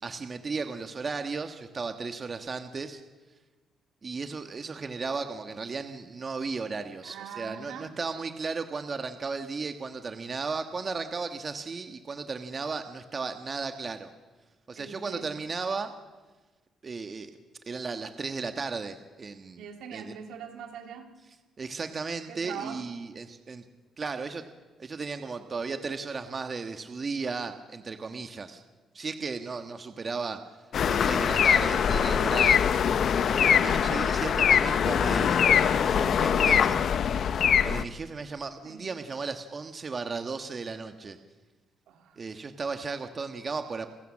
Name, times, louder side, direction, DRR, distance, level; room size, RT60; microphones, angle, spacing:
voice 1, 0.0-3.0 4.0-14.1 14.7-15.9 16.8-17.3 17.7-19.7 19.9-20.2 21.6-23.6 24.0-24.4 24.8-28.6 28.9-30.4 30.8-32.6 33.4-36.8 37.6-41.2 42.2-43.9, right 4 dB, 35° right, 7 dB, 1.4 m, -35 dB
voice 2, 7.0-7.9 14.8-15.4 19.6-21.1 22.3-22.9 38.6-38.8 41.9-42.2, right 7 dB, 85° right, 4 dB, 2.9 m, -42 dB
sound 1, 30.7-37.8, left 8 dB, 60° left, 0.9 m, -23 dB
29.0 x 15.5 x 7.4 m, 1.3 s
cardioid pair, 90°, 0 cm